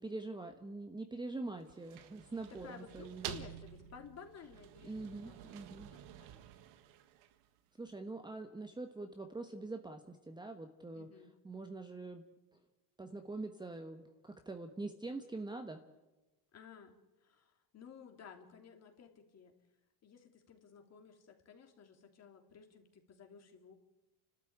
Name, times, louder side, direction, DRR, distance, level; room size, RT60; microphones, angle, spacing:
voice 1, 0.0-3.3 4.8-5.9 7.8-11.1 11.4-12.2 13.0-15.8, right 2 dB, 10° right, 5 dB, 1.2 m, -44 dB
sound 1, 1.6-7.6, right 11 dB, 80° right, 1.7 m, -50 dB
voice 2, 2.5-5.6 5.9-6.3 10.9-11.3 16.5-16.9 17.2-19.5 20.0-23.7, left 6 dB, 35° left, 4 dB, 3.1 m, -55 dB
30.0 x 13.0 x 8.8 m, 1.1 s
cardioid pair, 135°, 43 cm